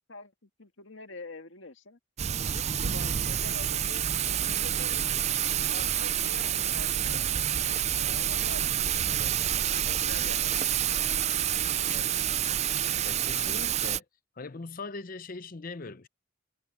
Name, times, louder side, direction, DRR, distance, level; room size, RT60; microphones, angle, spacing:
voice 1, 0.1-2.0 2.5-4.1 4.3-5.1 5.7-7.5 8.0-8.7 9.0-9.3 9.9-11.0 11.8-12.1, left 3 dB, 65° left, 1.9 m, -46 dB
Thunder / Rain, 2.2-14.0, right 10 dB, 35° right, 0.4 m, -28 dB
voice 2, 13.0-14.0 14.4-16.1, left 3 dB, 45° left, 0.7 m, -40 dB
head